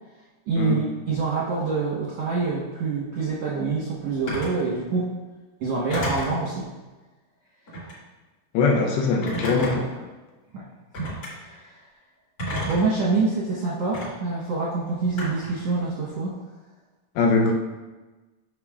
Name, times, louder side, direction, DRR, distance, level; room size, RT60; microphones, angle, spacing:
voice 1, 0.4-5.1 5.6-6.7 10.5-10.7 11.0-11.8 12.7-16.4, right 4 dB, 65° right, -7 dB, 1.7 m, -26 dB
Telephone, 4.3-4.6 5.9-6.4 7.7-8.0 9.2-10.0 10.9-11.3 12.4-12.9 13.9-14.1 15.2-15.6, equal, 40° left, 2.5 m, -31 dB
voice 2, 8.5-9.9 17.2-17.5, left 4 dB, 80° left, 1 dB, 2.5 m, -21 dB
9.1 x 6.0 x 2.4 m, 1.2 s
omnidirectional pair, 4.5 m